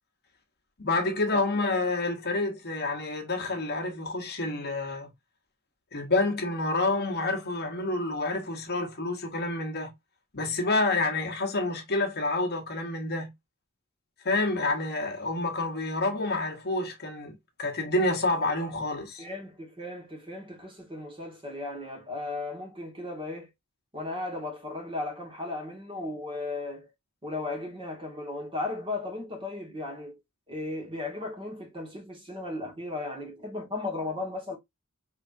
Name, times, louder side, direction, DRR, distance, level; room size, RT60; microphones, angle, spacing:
voice 1, 0.8-5.1 5.9-9.9 10.3-13.3 14.2-19.3, left 2 dB, 50° left, 1.2 m, -28 dB
voice 2, 19.2-23.5 23.9-26.9 27.2-30.2 30.5-34.6, left 2 dB, 25° right, 1.6 m, -36 dB
5.1 x 3.3 x 2.6 m
head